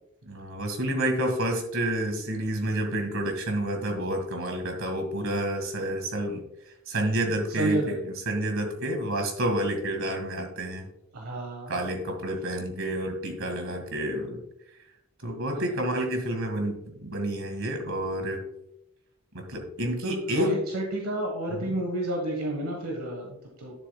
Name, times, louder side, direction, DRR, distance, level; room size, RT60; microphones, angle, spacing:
voice 1, 0.2-6.4 6.9-10.9 11.7-14.4 15.2-18.4 19.3-20.5 21.5-21.8, right 1 dB, 60° right, 4 dB, 1.9 m, -29 dB
voice 2, 7.6-7.9 11.1-11.7 15.5-15.6 20.0-23.9, right 1 dB, 80° right, 1 dB, 1.4 m, -30 dB
11.0 x 6.9 x 2.3 m, 0.82 s
head